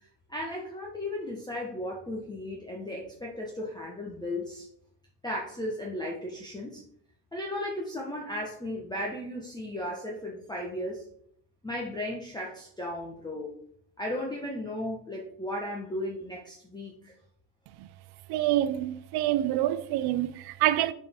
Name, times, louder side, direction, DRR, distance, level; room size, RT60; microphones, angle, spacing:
voice 1, 0.3-4.7 5.2-6.8 7.3-11.1 11.6-13.5 14.0-17.1, left 1 dB, 10° left, 1.1 m, -35 dB
voice 2, 18.3-20.9, right 13 dB, 50° right, 0.5 m, -26 dB
6.3 x 4.4 x 3.5 m
supercardioid pair, 90°, 50 cm